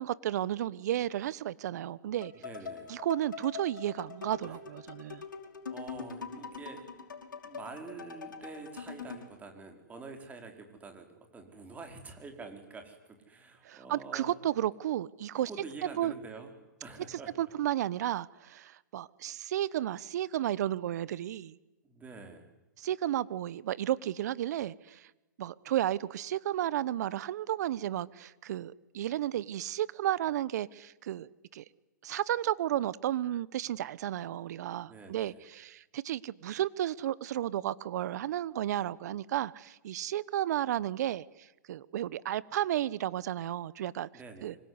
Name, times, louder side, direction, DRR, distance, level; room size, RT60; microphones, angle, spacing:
voice 1, 0.0-2.3 2.9-5.2 13.6-15.5 16.0-16.1 17.4-21.6 22.8-25.1 25.4-31.6 32.0-41.3 41.7-44.1 44.4-44.5, right 12 dB, 60° right, 20 dB, 1.1 m, -33 dB
sound 1, 2.2-9.3, left 5 dB, 80° left, 5.3 m, -43 dB
voice 2, 2.3-3.0 4.4-4.5 4.9-5.4 5.7-7.0 7.4-11.1 11.3-14.3 15.5-16.5 16.8-17.3 21.8-22.5 34.9-35.4 44.1-44.6, right 4 dB, 15° right, 5 dB, 5.0 m, -47 dB
25.5 x 24.0 x 9.8 m, 1.1 s
hypercardioid pair, 130°, 10 cm